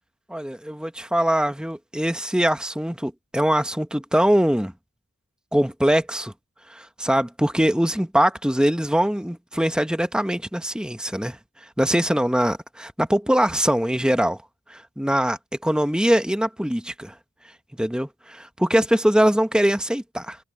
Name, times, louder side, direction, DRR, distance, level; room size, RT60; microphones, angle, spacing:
voice 1, 0.3-4.7 5.5-6.3 6.7-11.4 11.8-14.4 14.7-17.1 17.8-20.4, equal, 5° right, 1.0 m, -22 dB
head